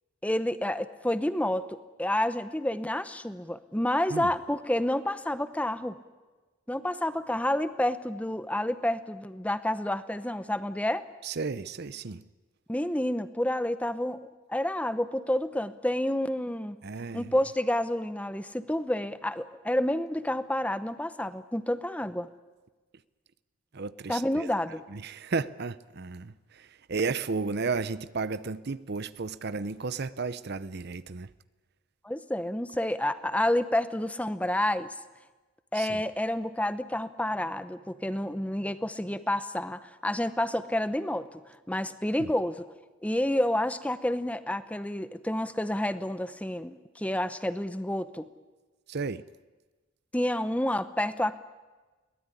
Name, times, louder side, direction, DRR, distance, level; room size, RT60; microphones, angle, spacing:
voice 1, 0.2-6.0 6.7-11.1 12.7-16.8 17.1-22.3 24.1-24.8 32.0-34.9 35.7-42.7 43.0-48.3 50.1-51.4, left 1 dB, 5° left, 0.8 m, -29 dB
voice 2, 11.2-12.2 16.8-17.3 23.7-24.5 24.9-31.3 35.7-36.0 42.2-42.3 48.9-49.2, right 4 dB, 55° right, 0.7 m, -33 dB
22.5 x 18.5 x 9.8 m
head